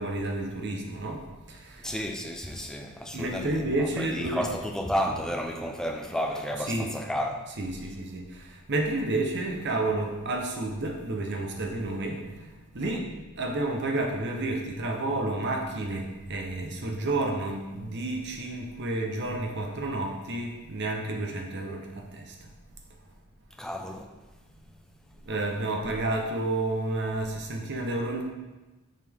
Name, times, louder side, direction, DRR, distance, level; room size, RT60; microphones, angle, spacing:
voice 1, 0.0-2.0 3.1-4.5 5.0-5.3 5.6-5.9 6.6-7.0 7.5-13.0 13.4-22.5 24.7-24.8 25.2-28.3, right 2 dB, 50° right, 1 dB, 0.9 m, -31 dB
voice 2, 1.8-7.4 23.6-24.1, equal, 5° left, 2 dB, 0.5 m, -32 dB
7.3 x 4.1 x 3.6 m, 1.1 s
head